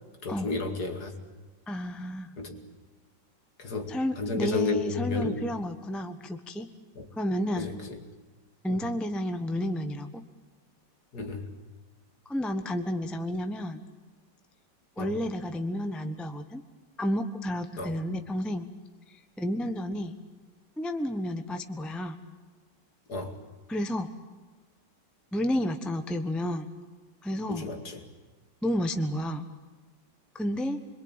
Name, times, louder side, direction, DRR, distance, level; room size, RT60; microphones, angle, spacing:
voice 1, 0.2-1.2 2.4-2.6 3.6-5.4 7.0-7.1 7.6-8.0 8.7-8.8 11.1-11.5 15.0-15.2 17.8-18.0 23.1-23.4 27.5-28.0, left 3 dB, 55° left, 4 dB, 2.8 m, -32 dB
voice 2, 1.7-2.4 3.9-6.7 7.2-7.7 8.6-10.2 12.3-13.8 15.0-16.6 17.0-18.7 19.1-20.2 20.8-22.2 23.7-24.1 25.3-26.7 27.2-27.7 28.6-29.5 30.3-30.8, left 1 dB, ahead, 6 dB, 0.8 m, -31 dB
26.0 x 22.5 x 9.0 m, 1.3 s
omnidirectional pair, 2.0 m